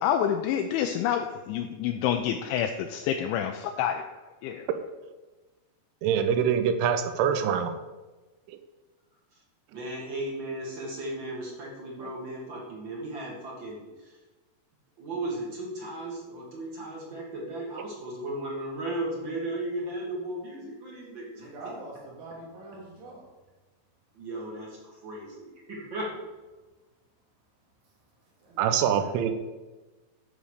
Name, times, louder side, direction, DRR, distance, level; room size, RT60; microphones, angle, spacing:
voice 1, 0.0-4.0 4.4-4.7, left 9 dB, 80° left, 4 dB, 2.9 m, -28 dB
voice 2, 6.0-7.7 28.6-29.3, right 8 dB, 85° right, 8 dB, 3.2 m, -24 dB
voice 3, 9.7-14.2 15.0-21.5 24.1-26.1, right 1 dB, 30° right, -3 dB, 2.6 m, -36 dB
voice 4, 21.4-23.2 28.4-29.2, right 2 dB, 65° right, -3 dB, 4.8 m, -44 dB
13.0 x 5.6 x 6.6 m, 1.2 s
omnidirectional pair, 5.5 m